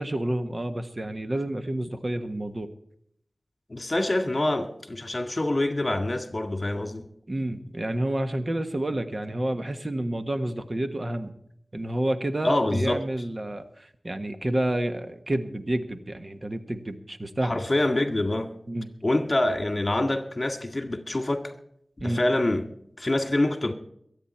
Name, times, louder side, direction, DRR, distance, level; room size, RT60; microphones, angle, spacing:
voice 1, 0.0-2.7 7.3-11.3 11.7-17.5 18.7-18.9 22.0-22.2, right 1 dB, 45° right, 1.4 m, -29 dB
voice 2, 3.7-7.1 12.4-13.0 17.4-18.5 19.0-21.5 22.0-22.7 23.0-23.7, left 1 dB, 40° left, 2.0 m, -25 dB
23.0 x 9.1 x 4.5 m
wide cardioid pair, 60°, 0 cm